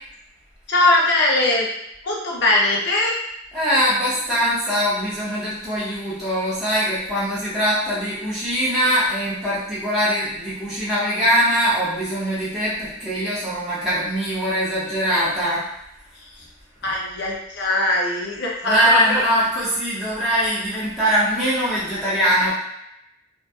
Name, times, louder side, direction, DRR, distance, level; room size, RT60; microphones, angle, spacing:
voice 1, 0.7-1.7 2.0-3.2 16.1-16.5 16.8-19.2, left 2 dB, 60° left, -3 dB, 0.6 m, -21 dB
voice 2, 3.5-15.6 18.6-22.5, equal, ahead, -11 dB, 0.6 m, -22 dB
2.6 x 2.5 x 2.3 m, 0.81 s
head